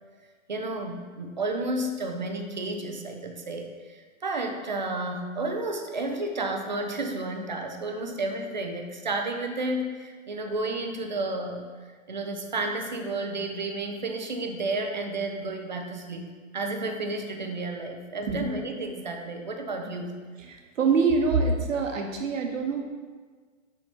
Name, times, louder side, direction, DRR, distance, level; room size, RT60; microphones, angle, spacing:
voice 1, 0.5-11.7 12.1-16.2 16.5-20.1, right 2 dB, 35° right, 4 dB, 0.5 m, -31 dB
voice 2, 20.5-22.8, right 4 dB, 70° right, 3 dB, 1.2 m, -25 dB
6.1 x 5.0 x 4.2 m, 1.5 s
hypercardioid pair, 175°, 40 cm